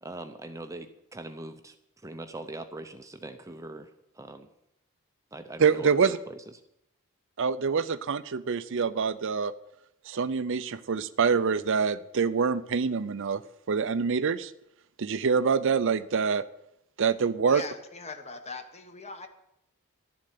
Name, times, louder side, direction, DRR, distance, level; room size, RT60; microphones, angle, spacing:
voice 1, 0.0-1.8 2.0-3.9 4.2-4.5 5.3-6.4, right 2 dB, 15° right, 8 dB, 0.6 m, -41 dB
voice 2, 5.6-6.2 7.4-9.5 10.1-13.4 13.7-14.5 15.0-16.4 17.0-17.6, right 5 dB, 60° right, 14 dB, 0.5 m, -25 dB
voice 3, 17.4-19.3, left 3 dB, 30° left, 7 dB, 1.3 m, -41 dB
12.0 x 7.5 x 9.4 m, 0.81 s
head